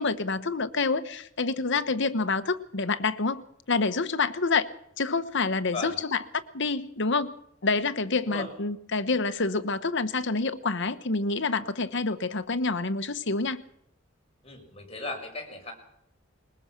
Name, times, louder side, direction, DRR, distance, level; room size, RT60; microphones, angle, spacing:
voice 1, 0.0-4.7 5.0-6.2 6.5-7.3 7.6-13.6, left 3 dB, 60° left, 12 dB, 1.2 m, -27 dB
voice 2, 14.4-15.7, left 3 dB, 30° left, 2 dB, 5.8 m, -36 dB
21.0 x 20.0 x 6.1 m, 0.74 s
head